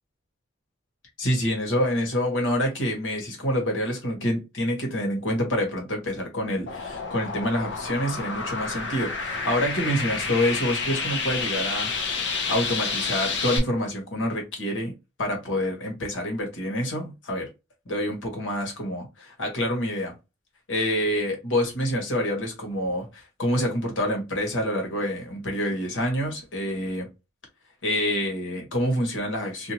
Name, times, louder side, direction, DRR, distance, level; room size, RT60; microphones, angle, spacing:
voice 1, 1.2-11.9 12.5-14.9 15.2-17.5 17.9-20.1 20.7-27.1 27.8-29.7, equal, 80° left, 1.3 m, -27 dB
sound 1, 6.7-13.6, left 4 dB, 65° left, 0.7 m, -29 dB
2.6 x 2.4 x 2.9 m
head